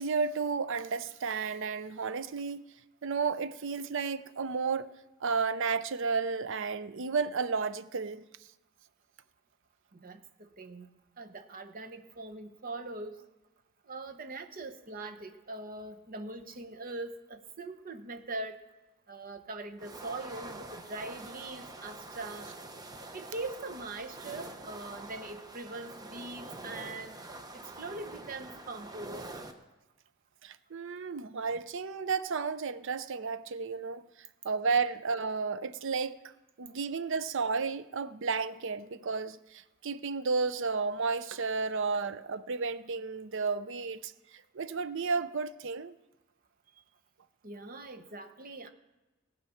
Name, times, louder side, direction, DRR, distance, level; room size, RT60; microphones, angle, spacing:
voice 1, 0.0-2.6 3.0-4.9 5.2-8.2 30.4-34.0 34.4-36.2 36.6-45.9, right 5 dB, 65° right, 0.6 m, -32 dB
voice 2, 9.9-13.2 13.9-18.6 19.1-22.5 23.1-27.2 27.5-29.3 47.4-48.7, right 2 dB, 45° right, 1.0 m, -42 dB
sound 1, 19.8-29.5, right 2 dB, 20° right, 1.0 m, -46 dB
18.5 x 7.5 x 5.7 m
head